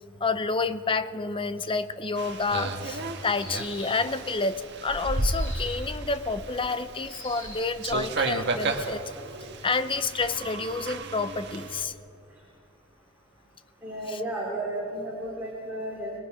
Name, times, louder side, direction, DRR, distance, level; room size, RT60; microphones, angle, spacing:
voice 1, 0.2-9.1 9.6-11.9 14.1-14.2, left 4 dB, 25° left, 12 dB, 0.7 m, -29 dB
sound 1, 2.2-11.8, right 2 dB, 60° right, 1.6 m, -33 dB
sound 2, 3.3-4.1 5.2-5.9 7.0-7.8, left 3 dB, 85° left, 6.9 m, -43 dB
voice 2, 13.8-16.2, right 1 dB, 10° right, -5 dB, 3.8 m, -33 dB
27.0 x 21.0 x 5.0 m, 2.6 s
head